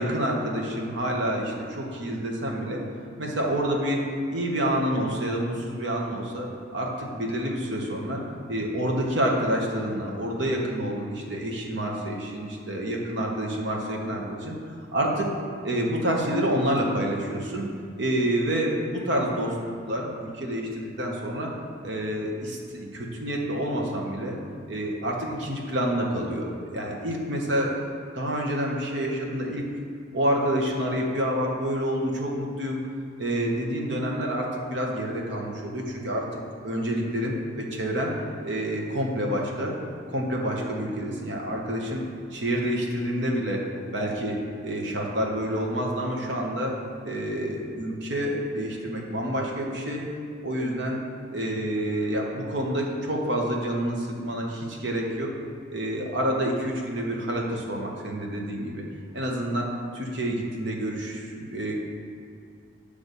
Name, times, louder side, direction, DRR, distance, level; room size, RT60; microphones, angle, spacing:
voice 1, 0.0-2.8 3.2-4.0 4.3-6.5 6.7-8.2 8.5-14.5 14.9-15.3 15.6-17.6 18.0-19.5 19.9-21.5 21.8-24.4 24.7-27.7 28.1-29.6 30.1-32.8 33.2-36.2 36.6-38.1 38.4-39.7 40.1-42.0 42.3-43.6 43.9-46.7 47.0-50.0 50.4-51.0 51.3-55.3 55.7-58.8 59.1-61.7, right 1 dB, 65° right, -1 dB, 1.1 m, -28 dB
9.3 x 3.4 x 6.7 m, 2.3 s
head